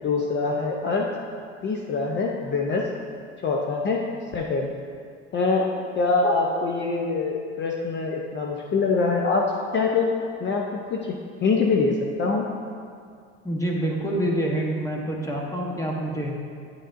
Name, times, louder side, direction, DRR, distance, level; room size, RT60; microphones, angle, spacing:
voice 1, 0.0-1.1 1.6-2.9 3.4-4.0 4.3-4.7 5.3-5.7 6.0-10.1 10.4-11.1 11.4-12.5, left 4 dB, 35° left, 0 dB, 0.6 m, -24 dB
voice 2, 13.4-16.3, right 1 dB, 10° left, -1 dB, 1.0 m, -26 dB
8.9 x 6.7 x 2.5 m, 2.2 s
supercardioid pair, 115°, 32 cm